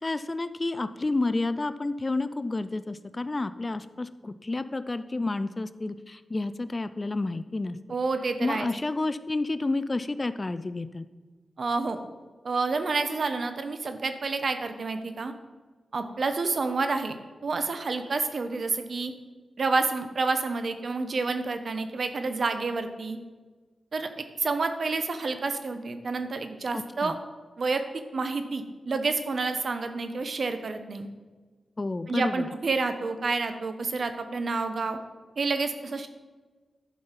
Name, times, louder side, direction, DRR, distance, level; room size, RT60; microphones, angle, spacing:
voice 1, 0.0-7.8 8.4-11.0 26.7-27.1 31.8-32.5, left 2 dB, 35° left, 13 dB, 0.5 m, -30 dB
voice 2, 7.9-8.7 11.6-12.0 12.4-15.3 15.9-17.2 17.4-19.1 19.6-23.2 23.9-27.2 27.6-27.8 28.1-31.1 32.1-35.0 35.4-36.1, right 3 dB, 60° right, 8 dB, 1.0 m, -29 dB
11.0 x 5.4 x 5.8 m, 1.4 s
cardioid pair, 65°, 0 cm